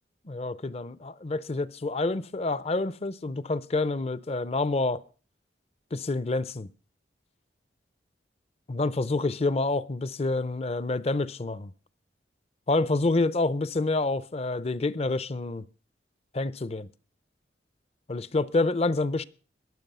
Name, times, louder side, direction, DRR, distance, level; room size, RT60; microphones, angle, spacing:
voice 1, 0.3-5.0 5.9-6.7 8.7-11.6 12.7-15.6 16.3-16.9 18.1-19.2, left 2 dB, 35° left, 0.6 m, -27 dB
21.5 x 7.5 x 5.5 m
head